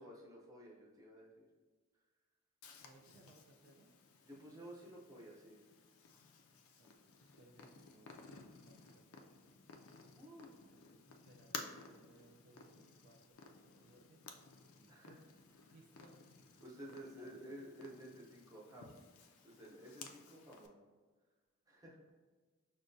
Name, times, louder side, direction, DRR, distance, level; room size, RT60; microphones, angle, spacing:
voice 1, 0.0-1.5 4.3-5.6 10.2-10.5 14.9-15.2 15.7-15.8 16.6-19.0 19.3-20.7 21.7-22.0, right 1 dB, 15° right, -3 dB, 0.7 m, -53 dB
Purr, 2.6-20.7, left 4 dB, 85° left, 0.4 m, -56 dB
voice 2, 2.8-3.9 6.8-9.4 10.7-14.3 14.8-14.9 15.6-16.5 16.8-17.6, right 2 dB, 55° right, 1 dB, 0.4 m, -66 dB
6.1 x 2.2 x 2.6 m, 1.4 s
head